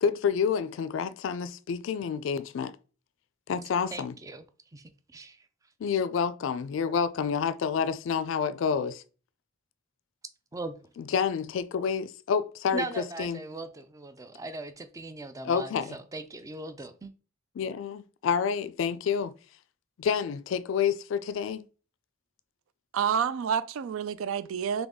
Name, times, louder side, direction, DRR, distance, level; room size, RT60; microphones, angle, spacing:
voice 1, 0.0-2.7 3.5-4.1 5.8-9.0 11.1-12.8 13.2-13.4 15.5-16.0 17.6-19.3 20.0-21.7, left 6 dB, 70° left, 0.3 m, -28 dB
voice 2, 3.9-4.4 4.7-5.5 10.5-10.7 12.7-17.1, right 2 dB, 15° right, 0.4 m, -39 dB
voice 3, 22.9-24.9, right 7 dB, 85° right, 0.4 m, -28 dB
3.9 x 3.4 x 3.5 m
head